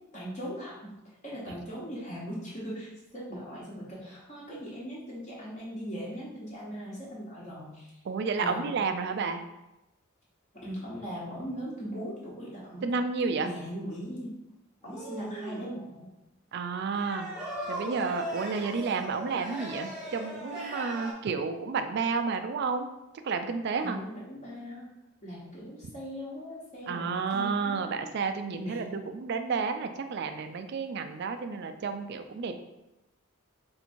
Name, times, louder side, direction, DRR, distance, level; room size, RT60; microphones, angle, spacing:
voice 1, 0.1-0.7 1.2-7.9 8.3-8.7 10.5-12.9 13.4-14.4 14.8-16.1 23.8-24.9 25.2-28.0 28.5-29.0, equal, 35° left, -6 dB, 1.1 m, -39 dB
voice 2, 8.1-9.4 12.8-13.5 16.5-17.3 17.7-22.9 23.2-24.0 26.9-28.8 29.1-32.6, right 5 dB, 55° right, 8 dB, 0.4 m, -31 dB
sound 1, 14.8-15.7 16.9-21.1, equal, 5° right, 0.7 m, -38 dB
3.5 x 2.8 x 4.3 m, 0.95 s
head